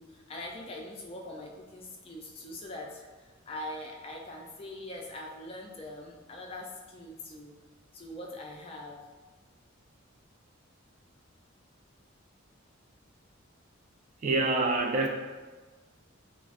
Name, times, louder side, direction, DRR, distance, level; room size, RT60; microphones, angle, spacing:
voice 1, 0.0-7.5 7.9-9.0, left 1 dB, 25° left, 0 dB, 0.4 m, -42 dB
voice 2, 14.2-15.1, right 2 dB, 35° right, 2 dB, 0.3 m, -26 dB
5.8 x 2.0 x 2.4 m, 1.4 s
head